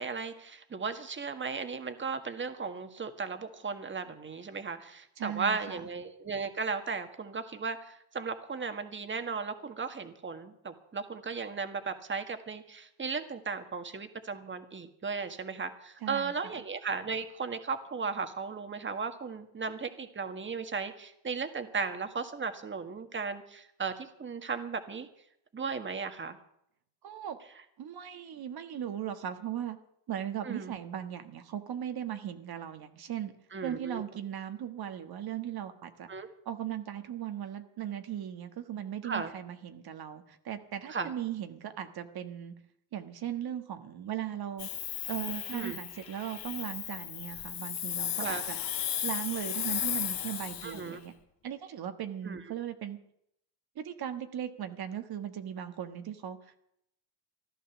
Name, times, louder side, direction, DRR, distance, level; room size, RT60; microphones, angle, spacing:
voice 1, 0.0-25.1 25.5-26.4 30.4-30.8 33.5-34.0 36.1-36.3 39.0-39.3 40.9-41.1 45.5-45.8 48.2-48.4 50.6-51.0 52.2-52.4, right 5 dB, 25° right, 8 dB, 1.7 m, -36 dB
voice 2, 5.2-5.9 16.0-16.5 27.0-27.4 27.8-29.8 30.1-33.3 33.6-36.1 36.4-42.5 42.9-44.7 45.1-48.6 49.0-51.1 51.4-53.0 53.7-56.6, right 10 dB, 50° right, 8 dB, 1.5 m, -38 dB
Hiss, 44.6-50.9, left 10 dB, 55° left, 2.0 m, -35 dB
15.0 x 12.0 x 7.1 m, 0.75 s
cardioid pair, 115°, 47 cm